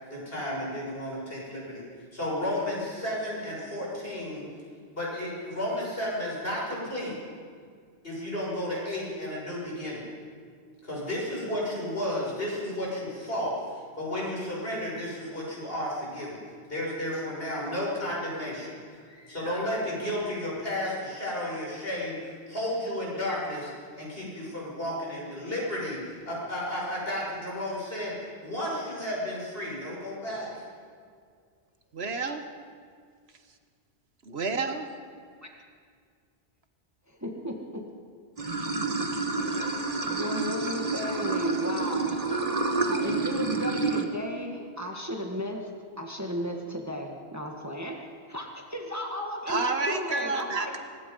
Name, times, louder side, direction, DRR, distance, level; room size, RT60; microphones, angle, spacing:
voice 1, 0.0-1.8 2.1-4.5 4.9-7.1 8.0-10.1 10.8-16.4 16.7-23.7 24.0-30.6, left 1 dB, 60° left, -4 dB, 7.0 m, -33 dB
voice 2, 31.9-32.4 34.2-34.9 49.5-50.8, right 3 dB, 70° right, 7 dB, 1.6 m, -30 dB
voice 3, 37.1-37.9 39.2-39.4 40.0-42.2 42.9-50.8, equal, 15° right, 2 dB, 1.7 m, -35 dB
Water / Sink (filling or washing), 38.4-44.0, right 3 dB, 35° right, 1.5 m, -29 dB
23.5 x 20.5 x 5.4 m, 2.1 s
omnidirectional pair, 1.1 m